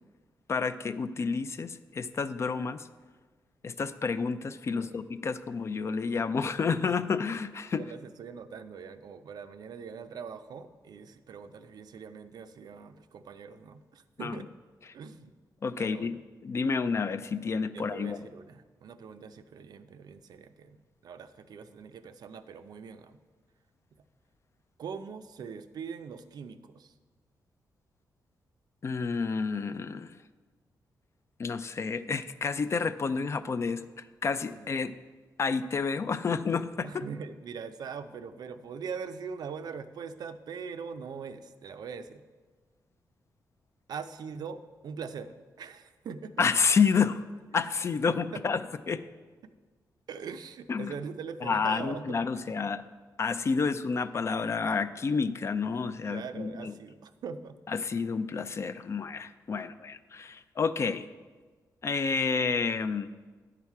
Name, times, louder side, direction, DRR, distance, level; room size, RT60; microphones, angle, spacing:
voice 1, 0.5-2.9 3.6-7.8 14.2-14.4 15.6-16.1 16.4-18.3 28.8-30.2 31.4-34.9 35.4-37.0 46.4-47.2 47.5-49.0 50.7-50.9 51.4-52.8 53.2-56.7 57.7-61.1 61.8-63.1, left 5 dB, 40° left, 12 dB, 0.4 m, -29 dB
voice 2, 7.8-14.5 14.9-15.3 15.8-16.1 17.7-20.8 21.0-23.2 24.8-26.9 33.6-33.8 34.5-34.8 36.8-42.2 43.9-46.3 48.0-48.4 50.1-52.4 56.1-57.6 59.5-59.7, right 6 dB, 65° right, 10 dB, 0.5 m, -42 dB
9.6 x 5.7 x 4.7 m, 1.4 s
cardioid pair, 120°, 7 cm